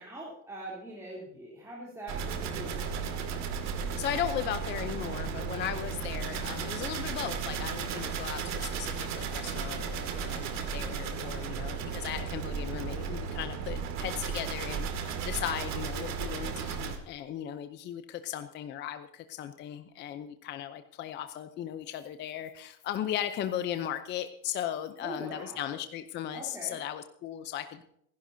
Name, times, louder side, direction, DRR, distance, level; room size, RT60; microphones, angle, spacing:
voice 1, 0.0-3.0 5.5-5.7 25.0-25.7 26.3-26.8, right 1 dB, 5° right, -6 dB, 3.3 m, -43 dB
sound 1, 2.1-17.0, right 6 dB, 40° right, 2.4 m, -35 dB
voice 2, 3.7-27.8, left 11 dB, 25° left, 9 dB, 0.7 m, -37 dB
27.0 x 11.5 x 2.8 m, 0.72 s
supercardioid pair, 135°, 42 cm